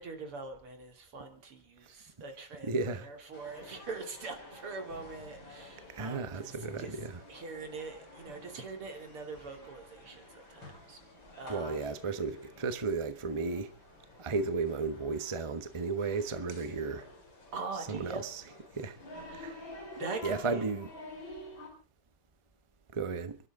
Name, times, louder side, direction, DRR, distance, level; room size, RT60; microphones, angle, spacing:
voice 1, 0.0-7.0 7.3-11.0 11.4-11.8 17.5-18.3 19.3-19.6 20.0-20.7, right 4 dB, 85° right, 3.8 m, -43 dB
voice 2, 2.6-3.1 5.9-7.1 11.5-13.7 14.2-17.1 17.9-18.4 18.7-19.0 19.3-19.6 20.2-20.9 22.9-23.4, right 4 dB, 20° right, 0.8 m, -34 dB
sound 1, 3.3-21.7, left 2 dB, 60° left, 5.1 m, -50 dB
29.0 x 12.5 x 3.7 m
omnidirectional pair, 2.4 m